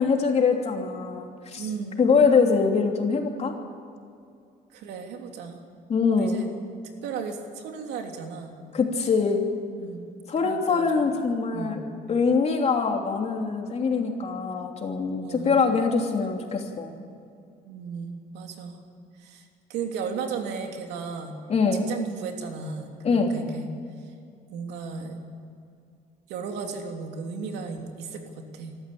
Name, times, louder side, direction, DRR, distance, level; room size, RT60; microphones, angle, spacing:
voice 1, 0.0-1.7 2.0-3.5 5.9-6.4 8.7-9.4 10.3-11.8 12.1-16.9 21.5-21.9 23.0-23.3, left 5 dB, 40° left, 2 dB, 3.1 m, -23 dB
voice 2, 1.6-2.1 4.7-5.6 6.1-6.5 7.0-8.5 9.8-10.1 10.4-11.0 11.5-11.8 15.2-15.5 17.6-18.8 19.2-21.3 21.7-23.7 24.5-25.2 26.3-28.8, right 5 dB, 85° right, 3 dB, 2.9 m, -35 dB
25.0 x 13.5 x 8.7 m, 2.4 s
cardioid pair, 110°, 17 cm